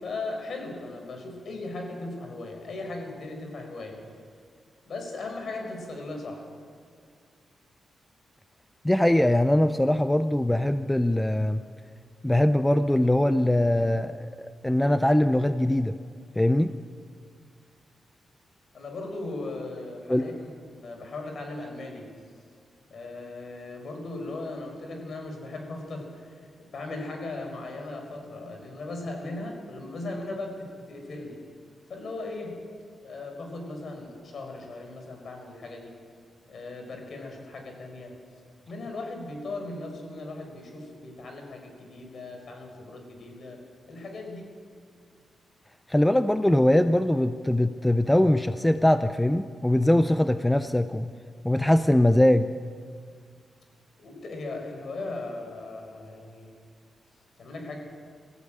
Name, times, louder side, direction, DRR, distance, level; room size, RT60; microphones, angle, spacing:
voice 1, 0.0-4.0 4.9-6.5 18.7-22.1 22.9-31.4 31.9-32.6 33.0-36.0 36.5-38.1 38.7-43.6 43.9-44.5 54.0-56.5 57.4-57.8, left 2 dB, 55° left, 3 dB, 4.8 m, -38 dB
voice 2, 8.8-11.6 12.2-16.0 16.4-16.7 20.1-20.3 45.9-51.1 51.4-52.5, left 1 dB, 5° left, 10 dB, 0.5 m, -22 dB
21.0 x 15.0 x 8.9 m, 2.1 s
wide cardioid pair, 140°, 0 cm